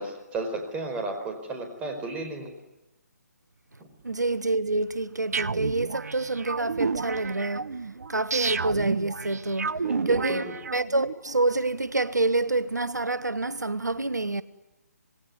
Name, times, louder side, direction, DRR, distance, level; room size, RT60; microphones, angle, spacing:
voice 1, 0.0-2.6 9.8-10.5, right 3 dB, 15° right, 4.8 m, -33 dB
voice 2, 4.0-7.8 8.1-14.4, right 2 dB, 85° right, 1.1 m, -27 dB
sound 1, 5.3-11.1, right 4 dB, 65° right, 1.1 m, -31 dB
27.5 x 20.0 x 9.6 m
figure-of-eight pair, 140°, 9 cm